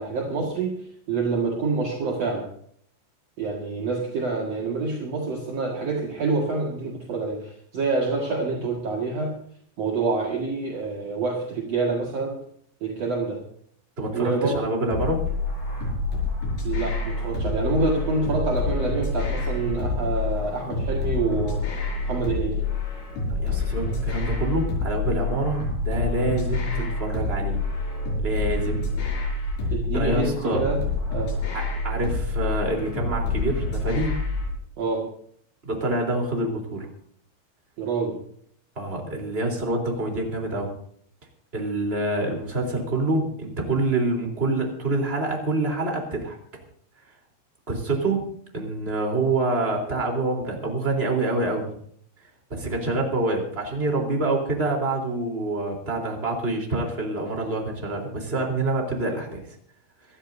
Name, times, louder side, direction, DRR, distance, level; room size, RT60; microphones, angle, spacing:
voice 1, 0.0-2.5 3.4-9.4 9.8-12.4 12.8-13.4 14.1-14.7 16.6-21.7 22.1-22.7 29.7-30.8 31.1-31.4 34.8-35.1 37.8-38.2, right 3 dB, 55° right, 0 dB, 1.9 m, -27 dB
voice 2, 14.0-15.2 23.4-27.6 28.2-28.9 29.9-30.6 31.5-34.1 35.6-36.9 38.7-40.7 41.5-46.4 47.7-48.2 48.5-51.7 52.5-59.4, right 2 dB, 15° right, 1 dB, 3.0 m, -26 dB
sound 1, 14.9-34.5, left 3 dB, 75° left, 8.6 m, -27 dB
25.5 x 13.5 x 2.7 m, 0.63 s
omnidirectional pair, 5.7 m